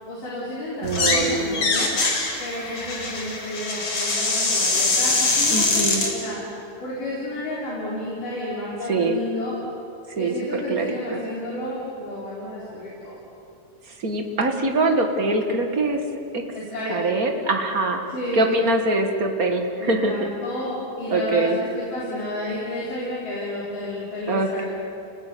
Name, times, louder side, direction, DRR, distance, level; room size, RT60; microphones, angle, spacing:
voice 1, 0.1-2.0 2.4-6.4 6.8-9.6 10.2-13.2 16.5-17.0 18.1-18.6 19.8-24.6, left 1 dB, 65° left, -6 dB, 5.9 m, -31 dB
sound 1, 0.8-1.3 1.5-6.1, left 3 dB, 45° left, 4.3 m, -23 dB
voice 2, 0.8-1.7 5.5-6.0 8.9-9.2 10.2-10.3 10.7-11.2 14.0-16.0 16.3-16.4 16.9-18.0 18.3-20.3 21.1-21.6 24.3-24.6, right 2 dB, 35° right, 4 dB, 1.7 m, -23 dB
29.0 x 20.0 x 9.4 m, 2.8 s
omnidirectional pair, 4.0 m